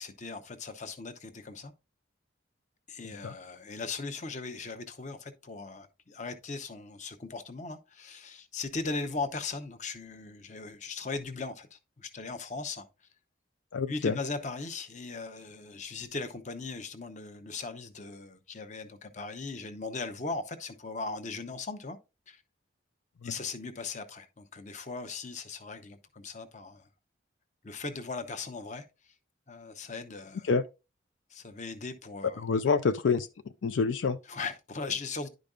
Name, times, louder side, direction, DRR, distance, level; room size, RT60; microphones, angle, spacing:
voice 1, 0.0-1.7 2.9-12.9 13.9-22.0 22.3-22.4 23.2-26.9 27.6-28.8 29.5-30.5 31.3-32.4 34.3-35.3, left 3 dB, 40° left, 0.8 m, -38 dB
voice 2, 13.7-14.1 23.2-23.3 30.5-30.6 32.4-33.3 33.6-34.2, left 5 dB, 80° left, 0.4 m, -27 dB
11.0 x 5.1 x 2.4 m
head